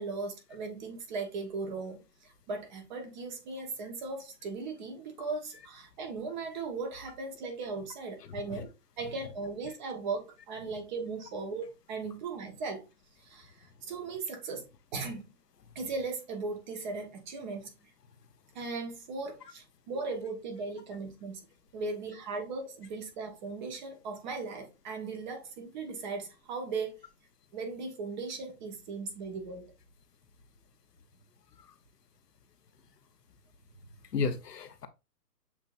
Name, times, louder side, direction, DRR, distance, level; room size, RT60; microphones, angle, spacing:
voice 1, 0.0-8.7 9.0-12.8 13.2-15.3 15.7-17.7 18.5-21.5 21.7-26.9 27.5-29.7, right 4 dB, 30° right, 1.2 m, -38 dB
voice 2, 8.2-8.6 31.6-31.7 34.1-34.9, left 5 dB, 75° left, 1.0 m, -34 dB
7.2 x 2.9 x 2.5 m
hypercardioid pair, 140°, 49 cm